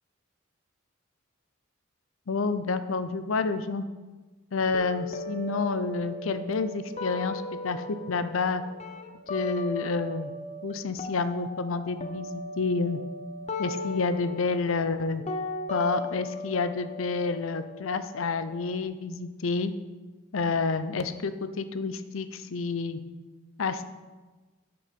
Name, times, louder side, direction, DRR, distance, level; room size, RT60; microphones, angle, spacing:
voice 1, 2.3-3.8 4.5-8.6 9.3-10.3 10.6-13.0 13.6-15.2 15.7-19.7 20.3-23.0 23.6-23.8, left 4 dB, 80° left, 11 dB, 0.6 m, -29 dB
sound 1, 4.7-10.7 11.0-18.8, left 2 dB, 35° left, 0.7 m, -37 dB
12.0 x 4.7 x 5.4 m, 1.3 s
head